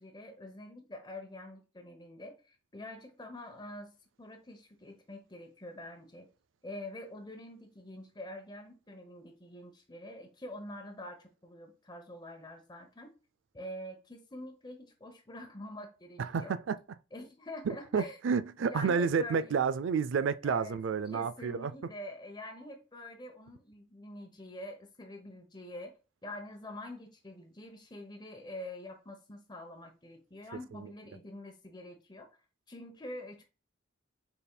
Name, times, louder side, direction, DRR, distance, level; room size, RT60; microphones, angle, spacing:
voice 1, 0.0-6.3 6.6-13.2 13.5-16.6 17.1-18.2 18.6-19.6 20.4-20.8 21.1-25.9 26.2-32.3 32.7-33.4, left 1 dB, 20° left, 0.8 m, -46 dB
voice 2, 16.2-16.8 17.7-21.7, right 6 dB, 75° right, 0.4 m, -30 dB
5.5 x 4.3 x 2.2 m
head